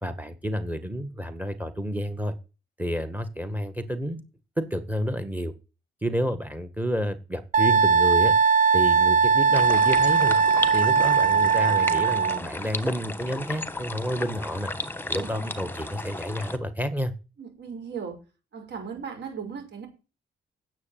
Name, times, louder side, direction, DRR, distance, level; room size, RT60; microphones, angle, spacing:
voice 1, 0.0-2.3 2.8-4.2 4.6-5.5 6.0-8.3 8.7-10.4 10.7-14.7 15.1-17.1, equal, 10° right, 11 dB, 1.7 m, -30 dB
Wind instrument woodwind instrument, 7.5-12.4, right 6 dB, 45° right, 0.8 m, -20 dB
sound 1, 9.5-16.6, left 2 dB, 10° left, 1.4 m, -34 dB
voice 2, 15.2-15.5 17.4-18.2 18.5-19.9, right 6 dB, 60° right, 4 dB, 5.8 m, -37 dB
9.7 x 7.5 x 7.6 m, 0.31 s
cardioid pair, 90°, 20 cm